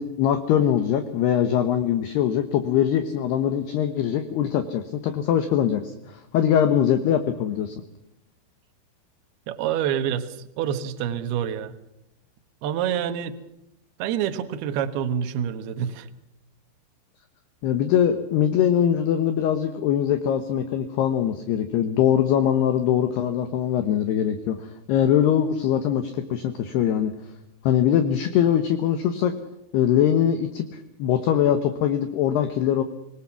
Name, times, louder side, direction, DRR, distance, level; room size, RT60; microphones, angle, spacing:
voice 1, 0.0-5.9 6.3-7.8 17.6-27.1 27.6-29.3 29.7-32.8, left 9 dB, 70° left, 9 dB, 2.8 m, -22 dB
voice 2, 9.5-11.8 12.6-13.4 14.0-16.1, right 9 dB, 65° right, 9 dB, 2.9 m, -27 dB
26.5 x 19.5 x 6.0 m, 0.89 s
omnidirectional pair, 5.7 m